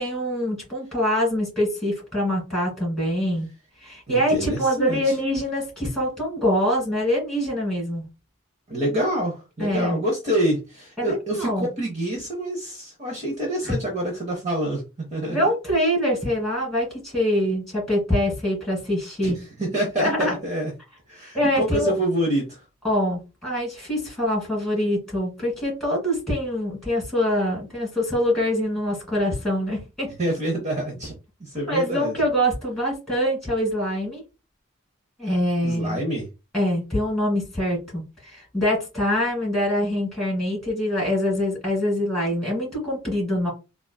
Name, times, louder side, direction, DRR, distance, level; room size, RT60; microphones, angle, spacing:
voice 1, 0.0-3.5 3.8-8.0 9.6-10.0 11.0-11.7 13.6-13.8 15.3-19.4 20.0-20.4 21.3-21.9 22.8-30.1 31.7-34.2 35.2-36.0 36.5-43.5, equal, ahead, 1.8 m, -24 dB
voice 2, 4.1-5.1 8.7-14.8 15.1-15.4 19.2-19.3 19.6-20.7 21.1-22.6 30.2-31.1 31.4-32.1 35.6-36.3, right 1 dB, 35° right, 0.7 m, -26 dB
3.7 x 2.4 x 2.2 m
head